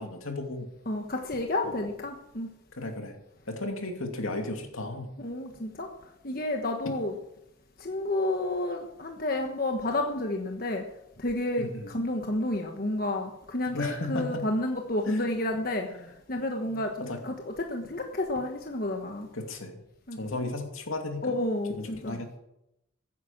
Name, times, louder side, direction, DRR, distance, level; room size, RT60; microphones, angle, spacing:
voice 1, 0.0-0.7 1.6-1.8 2.7-3.1 3.5-5.1 11.6-11.9 13.7-14.5 15.1-15.3 15.9-16.1 16.7-17.2 19.3-19.8 20.2-21.4 21.7-22.4, left 2 dB, 80° left, 3 dB, 2.6 m, -35 dB
voice 2, 0.9-2.5 5.2-5.9 6.2-7.2 7.8-10.9 11.2-15.9 16.3-19.3 20.1-20.5 21.2-22.2, left 1 dB, 45° left, 3 dB, 1.2 m, -30 dB
15.0 x 9.5 x 7.4 m, 0.84 s
head